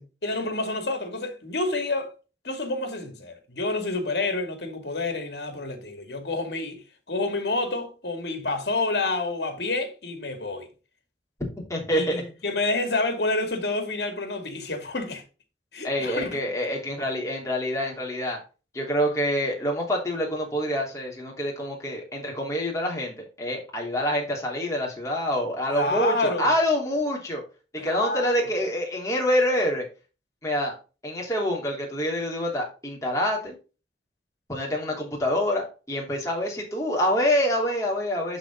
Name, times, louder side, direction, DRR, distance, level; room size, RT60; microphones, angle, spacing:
voice 1, 0.2-2.1 2.4-6.8 7.1-10.7 11.9-15.2 15.7-16.4 25.7-26.5 27.8-28.5, left 2 dB, 75° left, 2.2 m, -28 dB
voice 2, 11.6-12.2 15.8-18.4 18.7-27.4 27.7-29.8 30.4-30.8 31.0-33.6 34.5-38.4, equal, 20° left, 3.0 m, -26 dB
11.5 x 4.0 x 3.7 m
head